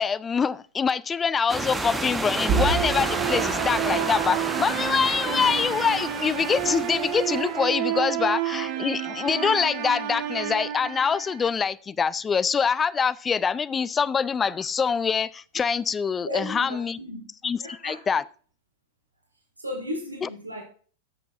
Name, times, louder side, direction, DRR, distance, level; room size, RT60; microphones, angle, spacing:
voice 1, 0.0-17.0 17.4-18.2 20.2-20.3, left 6 dB, 20° left, 0.3 m, -25 dB
sound 1, 1.5-7.6, right 3 dB, 10° right, 1.1 m, -31 dB
sound 2, 2.5-11.5, right 9 dB, 45° right, 1.2 m, -29 dB
voice 2, 16.2-17.2 17.6-18.2 19.6-20.6, left 1 dB, 85° right, 1.8 m, -35 dB
13.5 x 6.8 x 2.5 m
figure-of-eight pair, 90°, 0 cm